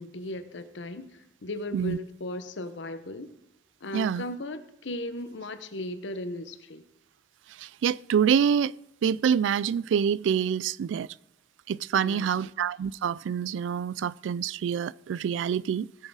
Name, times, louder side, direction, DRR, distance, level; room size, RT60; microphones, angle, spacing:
voice 1, 0.0-3.3 3.8-6.8 12.0-12.5, left 1 dB, 85° left, 0.9 m, -37 dB
voice 2, 3.9-4.2 7.6-8.8 9.0-11.1 11.7-15.9, right 7 dB, 90° right, 0.3 m, -26 dB
16.5 x 6.4 x 4.8 m
head